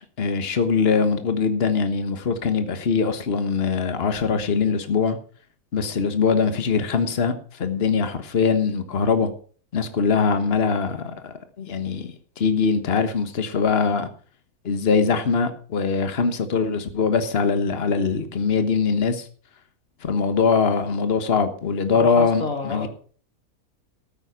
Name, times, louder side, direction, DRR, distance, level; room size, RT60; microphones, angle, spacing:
voice 1, 0.2-5.2 5.7-9.3 9.7-14.1 14.6-19.3 20.0-22.9, left 5 dB, 45° left, 10 dB, 1.5 m, -22 dB
voice 2, 21.9-22.9, left 3 dB, 60° left, 3 dB, 3.1 m, -29 dB
13.5 x 9.0 x 5.8 m, 0.43 s
omnidirectional pair, 1.6 m